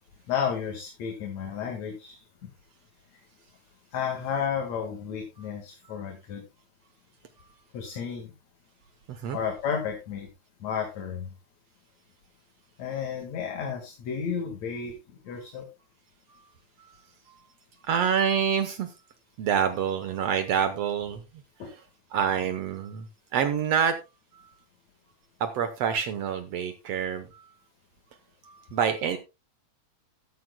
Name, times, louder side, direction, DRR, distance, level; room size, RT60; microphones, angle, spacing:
voice 1, 0.3-2.2 3.9-6.4 7.7-8.3 9.3-10.3 10.6-11.3 12.8-15.0 15.2-15.7 21.6-21.7, left 7 dB, 70° left, 3 dB, 3.0 m, -32 dB
voice 2, 17.8-18.9 19.4-21.2 22.1-23.1 23.3-24.0 24.3-24.4 25.4-27.5 28.4-29.2, right 8 dB, 65° right, 9 dB, 1.9 m, -27 dB
13.5 x 12.5 x 2.2 m, 0.26 s
omnidirectional pair, 3.3 m